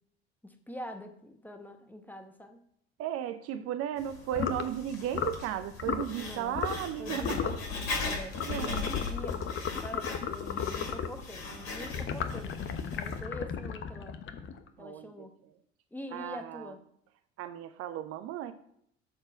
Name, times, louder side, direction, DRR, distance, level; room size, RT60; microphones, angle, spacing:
voice 1, 0.4-2.6 3.5-3.6 6.1-6.6 7.0-12.6 13.0-14.2 14.8-15.3 15.9-16.8, left 1 dB, 5° left, 7 dB, 1.2 m, -44 dB
voice 2, 3.0-7.4 8.5-8.9 14.8-15.3 16.1-16.7 17.4-18.5, right 11 dB, 45° right, 10 dB, 0.7 m, -35 dB
Writing, 4.0-13.2, left 4 dB, 55° left, 2.7 m, -39 dB
sound 1, 4.3-4.7 5.1-5.4 5.8-6.1 6.5-6.9 7.2-7.6 8.3-11.2 11.9-14.7, left 7 dB, 35° left, 1.0 m, -34 dB
12.5 x 4.5 x 4.4 m, 0.70 s
figure-of-eight pair, 60°, 32 cm